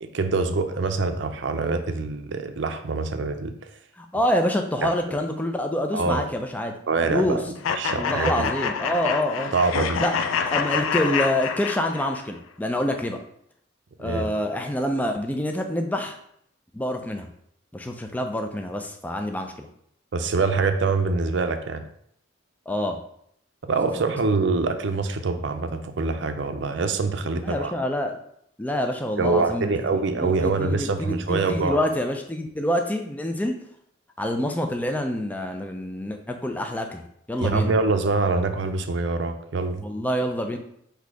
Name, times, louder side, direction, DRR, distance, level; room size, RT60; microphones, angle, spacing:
voice 1, 0.0-3.5 4.8-5.2 5.9-6.2 6.9-8.5 9.5-10.0 14.0-14.3 20.1-21.8 23.6-27.7 29.2-31.8 37.4-39.8, right 3 dB, 65° right, 8 dB, 0.5 m, -25 dB
voice 2, 4.0-6.7 7.0-7.4 7.9-9.5 10.0-10.1 10.4-13.2 14.0-16.2 16.7-17.3 17.7-19.7 22.7-23.0 27.3-28.1 28.6-29.7 30.2-33.6 34.2-37.7 39.8-40.6, left 1 dB, 10° left, 4 dB, 0.3 m, -26 dB
sound 1, 7.6-12.2, left 6 dB, 90° left, 0.4 m, -27 dB
4.1 x 2.7 x 4.6 m, 0.70 s
head